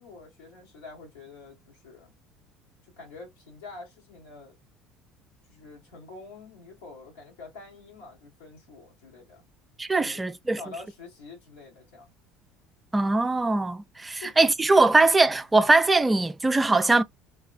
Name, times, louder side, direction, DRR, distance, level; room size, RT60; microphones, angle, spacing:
voice 1, 0.0-2.1 2.8-4.5 5.5-9.5 10.0-10.2 10.5-12.1 14.2-14.3, left 3 dB, 80° left, 1.6 m, -46 dB
voice 2, 9.8-10.6 12.9-17.0, right 3 dB, 15° right, 0.4 m, -21 dB
3.3 x 3.0 x 2.5 m
hypercardioid pair, 65°, 0 cm